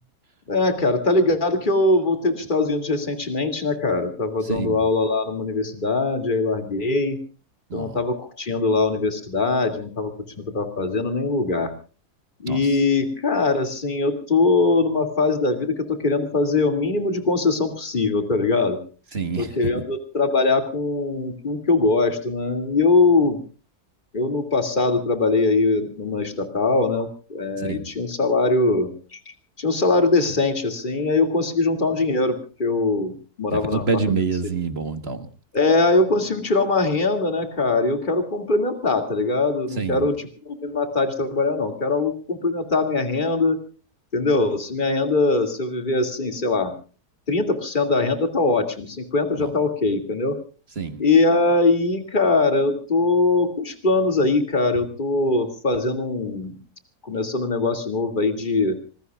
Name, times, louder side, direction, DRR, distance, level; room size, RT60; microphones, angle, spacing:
voice 1, 0.5-7.2 7.7-10.1 10.4-11.7 12.4-18.8 19.4-23.4 24.1-34.3 35.5-43.6 44.1-46.7 47.3-50.4 51.0-56.6 57.0-58.8, left 3 dB, 30° left, 7 dB, 2.6 m, -22 dB
voice 2, 4.4-4.8 7.7-8.0 12.5-12.6 19.1-19.5 27.6-27.8 33.5-35.3 39.8-40.1 49.4-49.5 50.8-51.0, right 5 dB, 40° right, 9 dB, 1.7 m, -26 dB
26.0 x 20.5 x 2.4 m, 0.36 s
omnidirectional pair, 1.6 m